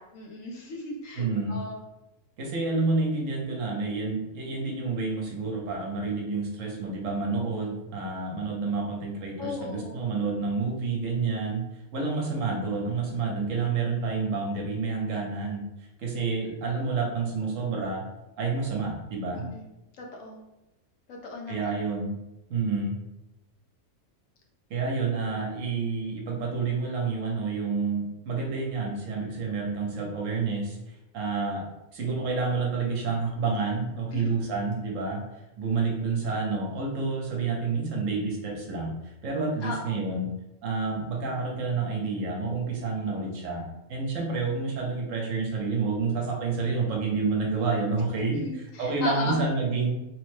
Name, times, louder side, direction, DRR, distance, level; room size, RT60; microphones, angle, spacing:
voice 1, 0.0-1.8 9.4-10.0 19.3-19.7 20.0-20.4 21.1-21.6 34.1-34.2 39.6-39.9 48.3-49.4, left 2 dB, 70° left, 0 dB, 1.0 m, -36 dB
voice 2, 1.2-1.6 2.4-11.6 11.9-15.7 16.0-18.0 18.4-19.5 21.5-22.2 22.5-23.0 24.7-30.8 31.1-31.7 31.9-35.2 35.6-38.9 39.2-40.3 40.6-48.4 48.8-50.0, right 4 dB, 70° right, -1 dB, 1.0 m, -29 dB
3.0 x 2.1 x 3.1 m, 0.97 s
omnidirectional pair, 1.4 m